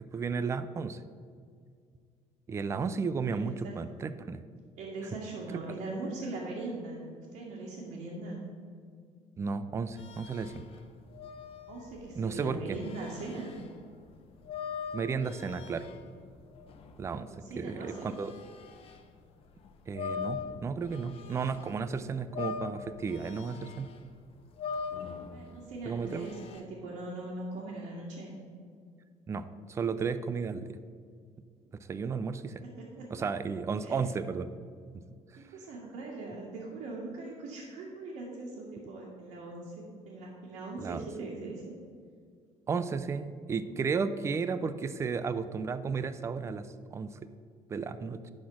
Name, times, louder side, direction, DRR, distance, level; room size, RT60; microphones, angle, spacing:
voice 1, 0.1-1.0 2.5-4.4 5.5-5.6 9.4-10.6 12.2-12.8 14.9-15.9 17.0-17.3 17.6-18.3 19.9-23.9 25.9-26.3 29.3-30.8 31.9-32.6 33.1-34.5 40.8-41.1 42.7-47.1 47.7-48.3, right 5 dB, 25° right, 12 dB, 0.4 m, -33 dB
voice 2, 3.3-3.9 4.8-8.4 11.7-13.5 17.3-18.1 25.3-28.3 32.6-33.3 33.8-34.0 35.4-41.7, right 2 dB, 85° right, -7 dB, 1.9 m, -41 dB
sound 1, 10.0-19.1 19.5-21.9 22.2-26.6, left 6 dB, 55° left, 0.9 m, -42 dB
11.0 x 4.3 x 5.9 m, 2.1 s
cardioid pair, 135°, 12 cm